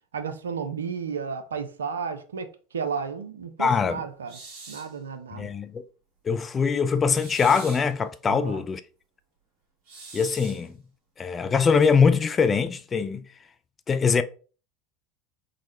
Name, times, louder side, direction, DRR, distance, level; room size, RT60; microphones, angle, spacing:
voice 1, 0.1-2.5 2.7-4.4 4.7-5.5 8.2-8.6, right 6 dB, 80° right, 0.4 m, -33 dB
voice 2, 3.6-4.0 5.3-5.8 6.3-8.8 10.1-10.7 11.2-13.2 13.9-14.2, left 5 dB, 25° left, 0.3 m, -22 dB
sound 1, 4.3-4.9 7.1-7.9 9.9-10.7, right 3 dB, 60° right, 1.4 m, -43 dB
3.7 x 2.0 x 3.1 m
hypercardioid pair, 80°, 0 cm